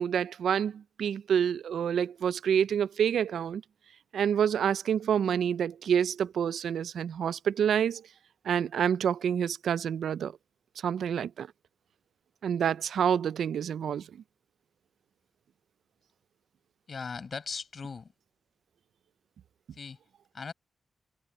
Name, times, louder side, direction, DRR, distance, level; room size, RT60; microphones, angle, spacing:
voice 1, 0.0-3.6 4.1-8.0 8.4-10.4 10.8-11.5 12.4-14.1, right 8 dB, 85° right, 0.4 m, -28 dB
voice 2, 16.9-18.1 19.7-20.0 20.3-20.5, left 5 dB, 50° left, 7.0 m, -38 dB
cardioid pair, 95°, 0 cm